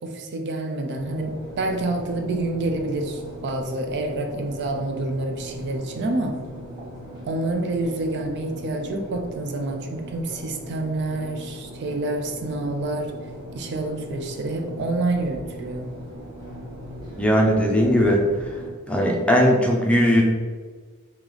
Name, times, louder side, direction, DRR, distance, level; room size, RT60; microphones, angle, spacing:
voice 1, 0.0-6.5 7.2-13.2 13.5-15.9, right 2 dB, 50° right, 4 dB, 0.4 m, -28 dB
sound 1, 0.9-18.7, equal, 20° right, 1.1 m, -39 dB
voice 2, 17.2-18.2 18.9-20.2, equal, 5° left, -1 dB, 0.5 m, -18 dB
3.2 x 2.9 x 3.9 m, 1.5 s
head